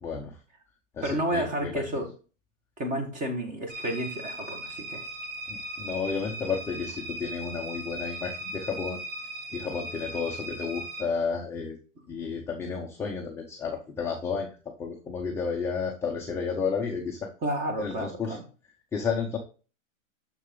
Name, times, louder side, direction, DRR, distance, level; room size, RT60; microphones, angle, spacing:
voice 1, 0.0-0.3 1.0-1.8 5.5-9.0 9.5-11.8 12.1-14.5 14.8-17.3 17.8-18.4 18.9-19.4, left 5 dB, 5° left, -1 dB, 0.5 m, -32 dB
voice 2, 1.0-2.1 2.8-5.0 17.4-18.4, right 1 dB, 20° right, 6 dB, 1.7 m, -31 dB
sound 1, 3.7-11.0, right 1 dB, 40° right, 1.9 m, -38 dB
6.7 x 6.5 x 3.7 m, 0.35 s
hypercardioid pair, 150°, 40 cm